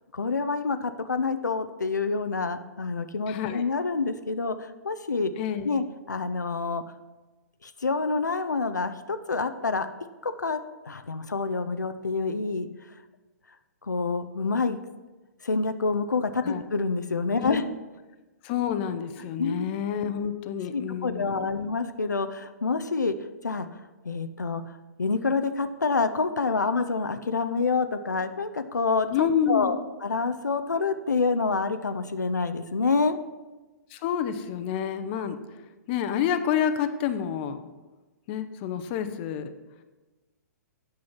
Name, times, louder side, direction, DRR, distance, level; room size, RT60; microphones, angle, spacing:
voice 1, 0.1-5.3 5.6-6.8 7.6-9.9 10.2-10.6 10.9-12.7 13.8-14.8 15.4-17.6 19.4-19.6 20.7-23.1 23.4-23.7 24.0-33.2, left 4 dB, 90° left, 10 dB, 0.5 m, -27 dB
voice 2, 3.3-3.6 5.4-5.8 16.4-16.6 17.4-17.7 18.4-21.5 29.1-29.9 33.9-35.4 35.9-37.7 38.3-39.5, left 8 dB, 40° left, 10 dB, 0.7 m, -28 dB
8.6 x 6.2 x 5.7 m, 1.2 s
figure-of-eight pair, 125°, 9 cm